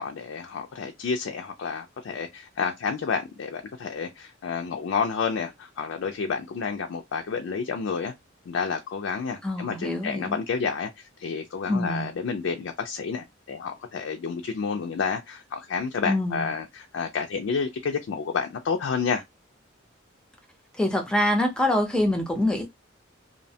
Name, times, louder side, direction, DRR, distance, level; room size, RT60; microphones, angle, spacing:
voice 1, 0.0-8.1 8.5-19.2, left 5 dB, 70° left, 0.4 m, -30 dB
voice 2, 9.4-10.4 11.7-12.1 16.1-16.5 20.7-22.7, left 1 dB, 5° left, 0.5 m, -25 dB
2.7 x 2.1 x 2.7 m
head